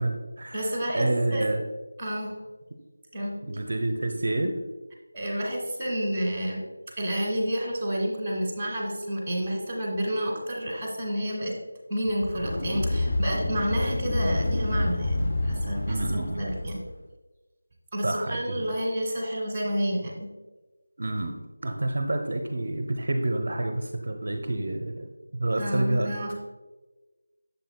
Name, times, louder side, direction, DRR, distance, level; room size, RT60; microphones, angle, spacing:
voice 1, 0.0-0.6 0.9-1.6 3.5-4.5 15.9-16.5 18.0-18.7 21.0-26.1, right 2 dB, 55° right, 4 dB, 0.6 m, -28 dB
voice 2, 0.5-1.5 2.0-2.4 3.1-3.4 5.1-6.6 7.0-11.5 11.9-16.8 17.9-20.3 25.6-26.3, equal, 10° right, -2 dB, 1.4 m, -30 dB
sound 1, 12.1-16.9, left 2 dB, 40° left, 0.6 m, -28 dB
7.6 x 6.9 x 2.2 m, 1.2 s
figure-of-eight pair, 170°, 0 cm